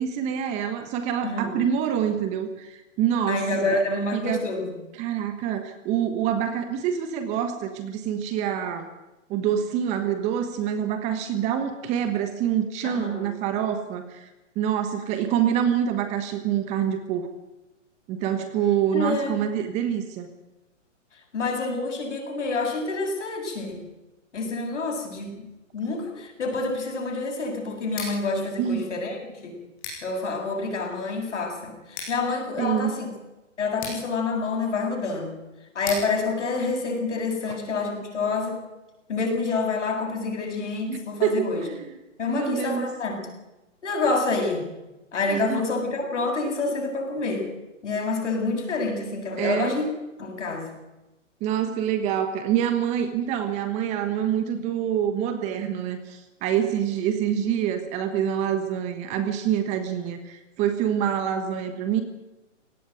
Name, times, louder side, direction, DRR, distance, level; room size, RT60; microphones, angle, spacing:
voice 1, 0.0-4.4 4.9-8.9 9.3-14.3 14.5-17.3 18.1-20.3 28.6-28.9 32.6-33.0 40.9-41.8 42.3-42.9 45.3-45.6 49.4-49.8 51.4-62.0, right 9 dB, 20° right, 9 dB, 1.3 m, -26 dB
voice 2, 1.2-1.6 3.3-4.8 12.8-13.3 18.9-19.4 21.3-23.8 24.3-25.5 25.7-29.6 30.0-33.1 33.6-35.3 35.7-38.6 39.1-41.7 42.2-43.2 43.8-44.7 45.1-47.5 47.8-49.9 50.2-50.7, left 3 dB, 70° left, 3 dB, 7.8 m, -27 dB
Scissors, 27.8-37.6, left 4 dB, 20° left, 8.0 m, -42 dB
18.0 x 17.5 x 9.2 m, 1.0 s
hypercardioid pair, 155°, 37 cm